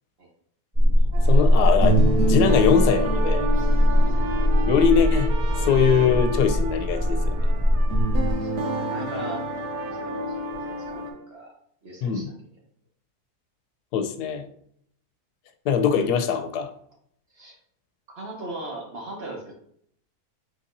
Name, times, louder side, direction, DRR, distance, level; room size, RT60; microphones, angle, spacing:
sound 1, 0.7-8.3, left 1 dB, 25° right, 1.2 m, -21 dB
sound 2, 1.1-11.1, right 2 dB, 85° right, 1.3 m, -29 dB
voice 1, 1.3-3.5 4.7-5.3 5.6-7.3 12.0-12.3 13.9-14.4 15.6-16.7, left 7 dB, 90° left, 7 dB, 1.1 m, -22 dB
Trumpet, 3.9-11.3, right 5 dB, 70° right, 0.7 m, -42 dB
voice 2, 4.0-4.3 8.4-9.4 9.8-11.5 11.8-12.3 17.3-17.6 18.1-19.5, right 2 dB, 45° right, 0 dB, 1.0 m, -39 dB
4.1 x 4.0 x 2.6 m, 0.67 s
omnidirectional pair, 1.7 m